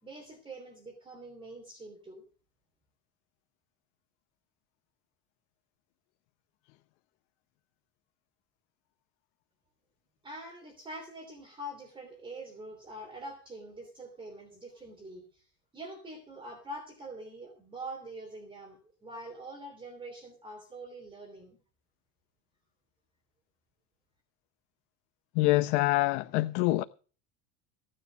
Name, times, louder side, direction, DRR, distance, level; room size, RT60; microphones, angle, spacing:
voice 1, 0.0-2.2 10.2-21.6, right 1 dB, 15° right, 3.0 m, -45 dB
voice 2, 25.3-26.8, left 19 dB, 75° left, 0.8 m, -25 dB
16.0 x 9.8 x 5.2 m
cardioid pair, 155°, 35 cm